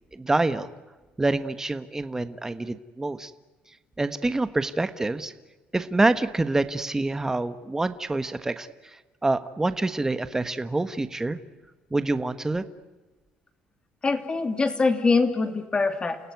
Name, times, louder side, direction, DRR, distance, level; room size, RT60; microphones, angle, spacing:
voice 1, 0.1-0.7 1.2-3.3 4.0-5.3 5.7-8.7 9.2-11.4 11.9-12.6, right 2 dB, 15° right, 11 dB, 1.2 m, -26 dB
voice 2, 14.0-16.2, left 4 dB, 25° left, 8 dB, 2.7 m, -23 dB
30.0 x 17.0 x 9.4 m, 1.2 s
cardioid pair, 105°, 4 cm